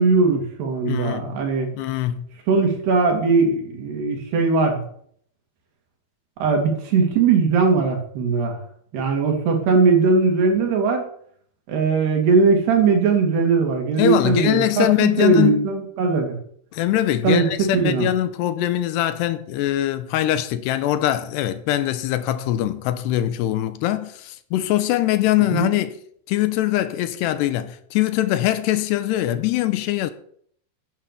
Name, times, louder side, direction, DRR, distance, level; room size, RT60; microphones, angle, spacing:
voice 1, 0.0-1.7 2.5-4.8 6.4-8.6 8.9-11.0 11.7-16.4 17.2-18.1 25.5-25.7, right 4 dB, 70° right, 4.5 m, -19 dB
voice 2, 0.9-1.4 1.7-2.3 14.0-15.6 16.7-26.0 26.3-30.1, left 13 dB, 80° left, 2.9 m, -22 dB
10.5 x 9.8 x 6.9 m
omnidirectional pair, 5.0 m